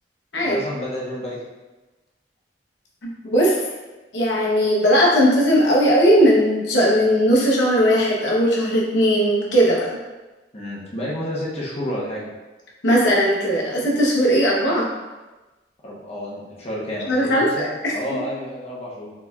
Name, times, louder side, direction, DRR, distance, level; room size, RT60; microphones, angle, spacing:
voice 1, 0.4-1.4 10.5-12.2 15.8-19.1, equal, 35° left, -6 dB, 0.9 m, -30 dB
voice 2, 3.0-3.6 4.1-10.0 12.8-14.9 17.1-18.2, equal, 80° left, -4 dB, 0.9 m, -18 dB
4.1 x 4.1 x 2.3 m, 1.1 s
head